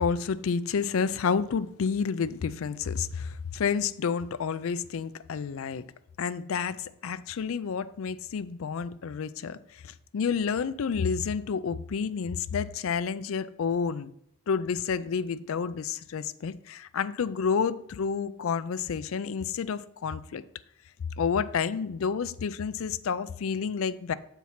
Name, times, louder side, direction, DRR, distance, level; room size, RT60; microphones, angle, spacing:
voice 1, 0.0-5.8 6.2-14.1 14.5-20.4 21.2-24.1, left 6 dB, 70° left, 0.4 m, -30 dB
6.9 x 4.7 x 5.6 m
head